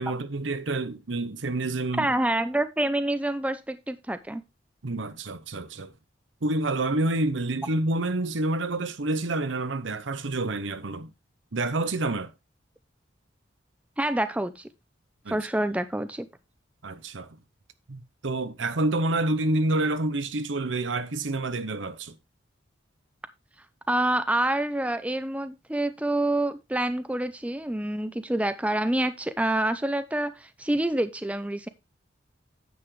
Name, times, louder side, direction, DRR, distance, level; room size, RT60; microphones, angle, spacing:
voice 1, 0.0-2.1 4.8-5.9 6.4-11.1 11.5-12.3 15.2-15.4 16.8-17.3 17.9-22.1, right 2 dB, 80° right, 0.9 m, -28 dB
voice 2, 2.0-4.4 14.0-14.7 15.3-16.3 23.9-31.7, right 1 dB, 5° right, 0.6 m, -27 dB
9.5 x 8.2 x 3.2 m
head